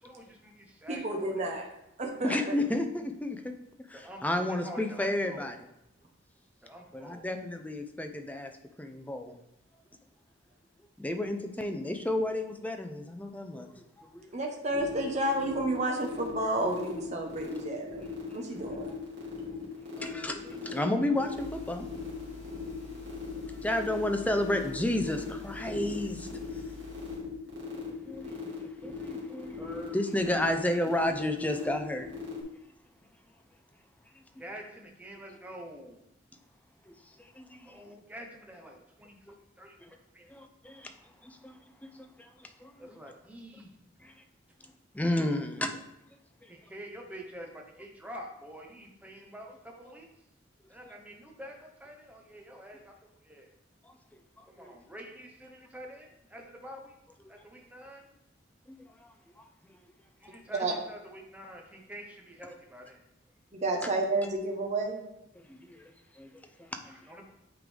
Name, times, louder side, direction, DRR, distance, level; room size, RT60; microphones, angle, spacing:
voice 1, 0.0-1.5 3.9-5.5 6.6-7.3 29.6-30.0 34.4-36.0 37.6-39.2 39.6-39.8 40.1-40.3 42.8-43.8 46.5-50.1 50.7-52.9 53.2-53.5 54.5-57.0 57.3-58.0 60.2-63.0 66.8-67.2, equal, 10° right, 1 dB, 0.9 m, -47 dB
voice 2, 0.9-1.7 2.0-2.5 14.3-18.9 60.6-60.7 63.5-65.0, right 2 dB, 40° right, 1 dB, 1.0 m, -31 dB
voice 3, 2.2-3.5 3.9-5.7 6.9-8.5 8.8-9.4 11.0-14.3 18.0-18.1 18.6-18.7 19.6-19.7 20.0-21.9 23.5-26.6 27.6-32.4 36.9-37.8 39.3-39.4 39.8-39.9 40.3-40.9 41.2-43.0 44.0-44.1 44.9-45.8 46.4-46.5 50.8-51.0 53.9-54.0 54.4-54.7 58.7-58.8 59.0-59.4 60.2-60.3 65.4-67.0, left 1 dB, 10° left, 6 dB, 0.5 m, -33 dB
sound 1, 14.7-32.4, left 6 dB, 65° right, 2.1 m, -39 dB
sound 2, 21.4-27.2, left 1 dB, 60° left, 2.1 m, -48 dB
9.0 x 3.8 x 3.4 m, 0.86 s
head